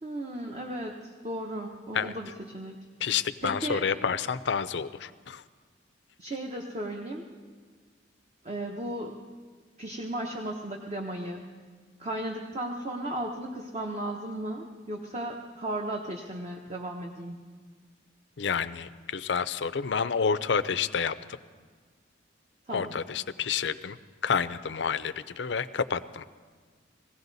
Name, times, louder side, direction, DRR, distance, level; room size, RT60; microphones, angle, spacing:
voice 1, 0.0-2.9 3.4-3.8 6.2-7.3 8.4-9.2 9.8-11.4 12.0-17.4 22.7-22.9, right 1 dB, 35° right, 2 dB, 0.9 m, -35 dB
voice 2, 3.0-5.4 18.4-21.1 22.7-24.0 24.2-26.2, left 6 dB, 65° left, 13 dB, 0.5 m, -29 dB
21.0 x 16.0 x 4.0 m, 1.5 s
head